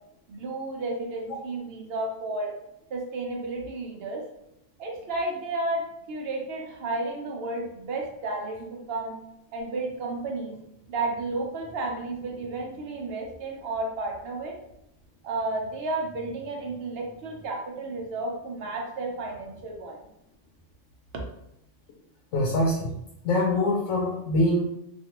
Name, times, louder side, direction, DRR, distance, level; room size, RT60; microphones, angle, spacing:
voice 1, 0.3-2.5 2.9-4.2 4.8-9.2 9.5-10.6 10.9-14.6 15.2-20.0, right 2 dB, 55° right, 0 dB, 0.9 m, -32 dB
voice 2, 22.3-22.9 23.2-24.6, left 1 dB, 75° left, -1 dB, 1.0 m, -24 dB
3.1 x 2.5 x 2.9 m, 0.81 s
omnidirectional pair, 1.3 m